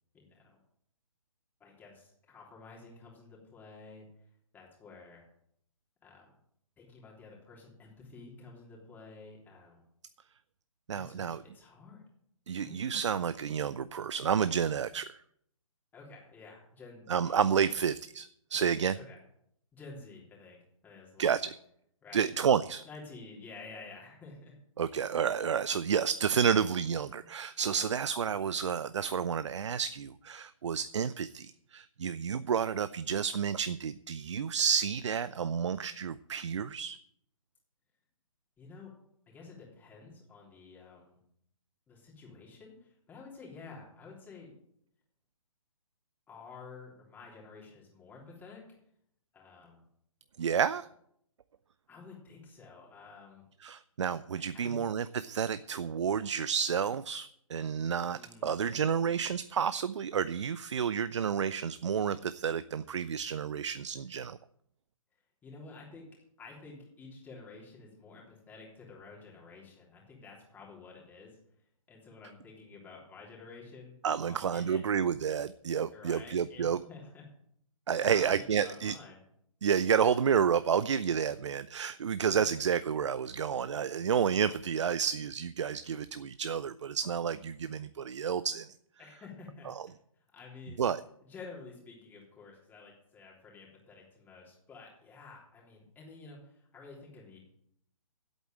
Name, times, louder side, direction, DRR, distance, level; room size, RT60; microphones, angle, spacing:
voice 1, 0.1-0.6 1.6-4.1 4.5-5.3 6.0-6.3 6.8-9.8 10.9-12.0 12.5-12.8 15.9-17.8 18.9-19.2 19.7-21.4 22.0-22.2 22.8-24.5 27.7-27.8 32.5-32.7 38.6-38.9 39.3-41.2 41.9-44.5 46.3-48.6 49.3-49.8 51.9-53.4 54.3-54.8 58.1-58.6 65.4-66.1 66.4-71.4 71.9-74.8 75.9-77.2 77.9-79.2 82.2-82.6 89.0-90.8 91.2-97.4, left 4 dB, 10° left, -3 dB, 3.4 m, -51 dB
voice 2, 10.9-11.4 12.5-15.2 17.1-19.0 21.2-21.5 22.1-22.8 24.8-37.0 50.4-50.9 53.6-64.4 74.0-76.8 77.9-78.9 79.6-88.7 89.7-89.8 90.8-91.0, right 7 dB, 60° right, 15 dB, 0.5 m, -30 dB
8.2 x 8.1 x 8.8 m, 0.70 s
figure-of-eight pair, 140°, 18 cm